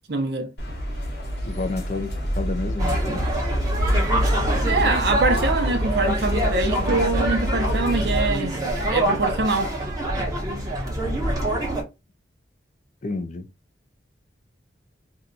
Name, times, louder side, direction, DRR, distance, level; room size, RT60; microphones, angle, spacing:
voice 1, 0.1-0.5 4.7-9.7, right 2 dB, 60° right, 0.7 m, -24 dB
sound 1, 0.6-8.3, equal, 60° left, 1.1 m, -26 dB
voice 2, 1.4-3.2 13.0-13.5, left 3 dB, 40° left, 0.4 m, -30 dB
sound 2, 2.8-11.8, right 1 dB, 20° right, 1.0 m, -26 dB
2.7 x 2.2 x 3.9 m
head